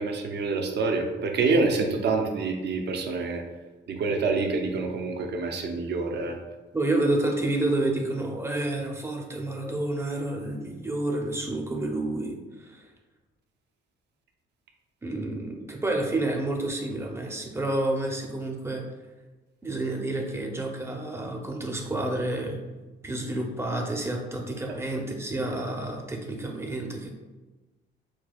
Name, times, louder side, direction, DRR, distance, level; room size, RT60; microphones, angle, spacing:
voice 1, 0.0-3.4 3.9-6.4, right 3 dB, 60° right, 3 dB, 0.7 m, -27 dB
voice 2, 6.7-12.8 15.0-18.8 19.6-22.6 23.0-27.1, right 2 dB, 15° right, 1 dB, 0.7 m, -29 dB
6.0 x 2.3 x 2.3 m, 1.2 s
cardioid pair, 90°, 20 cm